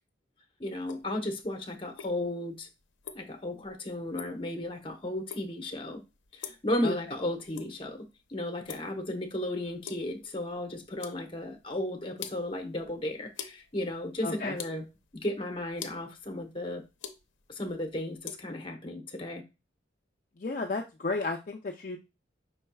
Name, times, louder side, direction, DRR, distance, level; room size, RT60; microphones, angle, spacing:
voice 1, 0.6-2.7 3.1-6.0 6.3-14.9 15.1-16.8 17.5-19.4, left 1 dB, 30° left, 0.9 m, -34 dB
sound 1, 0.8-18.4, left 8 dB, 80° left, 0.6 m, -47 dB
voice 2, 14.2-14.5 20.4-22.0, left 3 dB, 45° left, 0.5 m, -33 dB
5.4 x 4.3 x 2.3 m
head